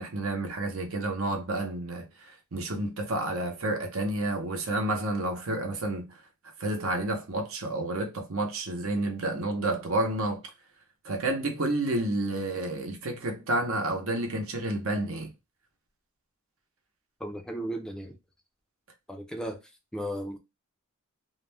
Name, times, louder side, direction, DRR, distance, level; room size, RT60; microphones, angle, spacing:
voice 1, 0.0-6.1 6.6-10.4 11.0-15.3, right 2 dB, 70° right, 0.8 m, -30 dB
voice 2, 17.2-18.2 19.1-19.6 19.9-20.4, equal, 5° left, 0.4 m, -35 dB
2.4 x 2.1 x 3.3 m
head